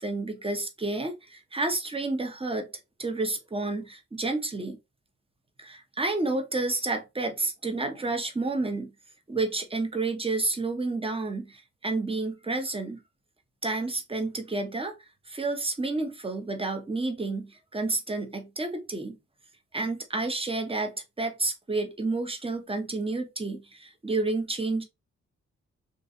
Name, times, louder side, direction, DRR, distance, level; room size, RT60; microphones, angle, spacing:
voice 1, 0.0-2.7 3.0-4.8 5.6-8.9 9.3-13.0 13.6-14.9 15.3-19.2 19.7-24.8, right 3 dB, 20° right, 0.8 m, -30 dB
2.6 x 2.5 x 2.3 m
cardioid pair, 60°, 30 cm